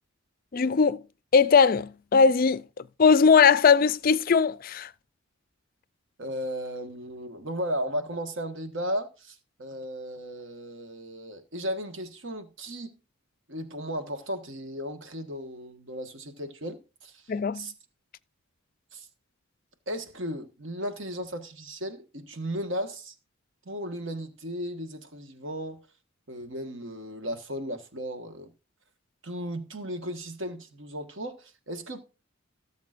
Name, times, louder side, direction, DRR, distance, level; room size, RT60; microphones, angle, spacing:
voice 1, 0.5-1.0 1.3-4.9 17.3-17.7, left 5 dB, 40° left, 0.4 m, -20 dB
voice 2, 6.2-12.9 13.5-17.2 17.5-17.7 18.9-19.1 19.9-23.1 23.6-25.8 26.3-28.5 29.2-32.0, equal, 60° right, 1.4 m, -35 dB
17.5 x 7.2 x 2.5 m
head